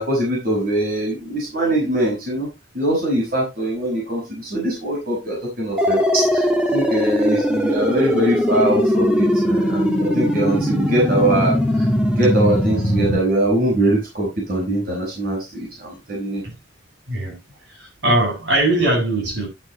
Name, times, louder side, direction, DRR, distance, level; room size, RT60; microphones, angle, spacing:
voice 1, 0.0-2.5 2.7-11.9 12.2-16.4, right 1 dB, 50° right, 5.5 m, -22 dB
sound 1, 5.8-13.2, equal, 5° right, 1.8 m, -19 dB
voice 2, 17.7-19.5, right 1 dB, 70° right, 7.1 m, -20 dB
11.0 x 9.2 x 3.0 m
head